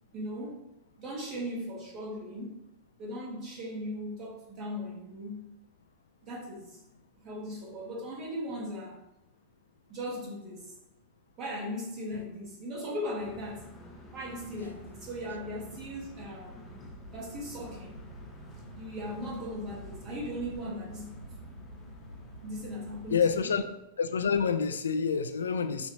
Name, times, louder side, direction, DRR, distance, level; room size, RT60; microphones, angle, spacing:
voice 1, 0.1-0.6 1.0-2.6 3.0-5.5 6.2-6.8 7.2-9.0 9.9-10.7 11.4-13.7 14.1-16.8 17.1-18.0 18.7-21.2 22.4-23.5, equal, 30° right, -4 dB, 1.7 m, -38 dB
sound 1, 13.2-23.7, equal, 15° left, 1.0 m, -51 dB
sound 2, 14.7-23.4, right 1 dB, 85° right, 0.3 m, -49 dB
voice 2, 23.1-23.7 24.0-25.9, left 6 dB, 70° left, 9 dB, 0.3 m, -27 dB
6.2 x 2.6 x 3.1 m, 0.88 s
figure-of-eight pair, 90°, 0 cm